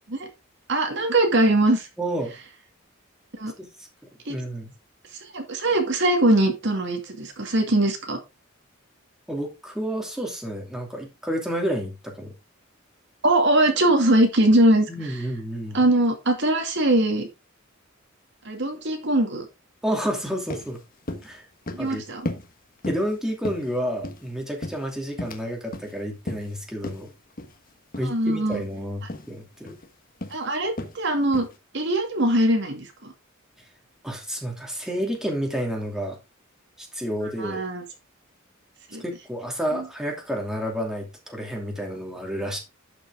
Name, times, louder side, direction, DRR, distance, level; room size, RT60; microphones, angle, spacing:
voice 1, 0.7-1.9 3.4-3.5 4.3-4.4 5.2-8.2 13.2-14.9 15.7-17.3 18.4-19.5 21.7-22.2 28.0-28.6 30.3-31.5 31.7-33.1 37.4-37.8 38.9-39.0 39.7-39.9, right 1 dB, 60° right, 4 dB, 2.2 m, -21 dB
voice 2, 2.0-2.3 3.6-3.7 4.3-4.7 9.3-12.3 14.9-15.8 19.8-20.8 21.2-21.4 21.8-22.0 22.9-27.1 28.0-29.7 34.0-36.2 36.8-37.6 39.0-42.6, equal, 5° right, 1 dB, 2.7 m, -30 dB
sound 1, 20.2-20.3 20.5-20.7 21.1-21.3 21.7-21.9 22.3-22.5 22.8-23.1 23.4-24.3 24.6-25.5 25.7-25.9 26.3-26.5 26.8-27.0 27.4-27.6 27.9-28.1 28.5-28.7 29.1-29.3 29.7-29.9 30.2-30.4 30.8-31.0 31.3-31.6, left 1 dB, 45° left, 1.5 m, -34 dB
11.5 x 6.0 x 3.6 m, 0.25 s
head